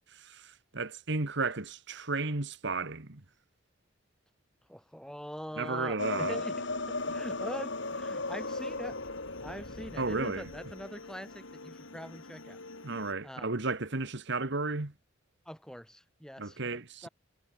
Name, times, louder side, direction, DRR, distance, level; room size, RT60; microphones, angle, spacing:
voice 1, 0.1-3.2 5.6-6.4 10.0-10.5 12.8-14.9 16.4-17.1, right 3 dB, 60° right, 1.9 m, -33 dB
voice 2, 4.7-9.0 9.4-12.6 13.2-13.7 15.5-17.1, equal, 5° left, 6.9 m, -43 dB
sound 1, 6.0-10.8, left 3 dB, 65° left, 5.2 m, -36 dB
sound 2, 7.0-13.1, left 2 dB, 85° left, 3.3 m, -49 dB
head